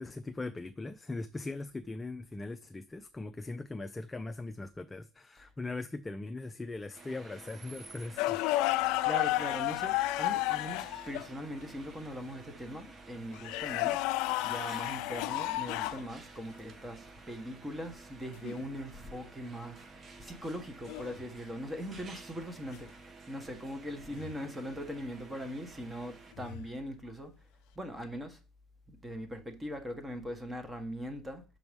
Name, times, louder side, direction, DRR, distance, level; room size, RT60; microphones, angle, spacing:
voice 1, 0.0-8.4, left 2 dB, 15° left, 0.5 m, -40 dB
sound 1, 6.9-26.3, right 3 dB, 35° right, 1.2 m, -52 dB
sound 2, 8.2-11.3 13.4-16.0 18.4-18.6 20.9-21.2 24.1-24.3 26.4-26.7, left 17 dB, 80° left, 0.3 m, -32 dB
voice 2, 8.8-27.3 27.7-28.4 28.9-31.4, equal, 15° right, 1.5 m, -41 dB
6.0 x 4.8 x 5.3 m
supercardioid pair, 95°, 0 cm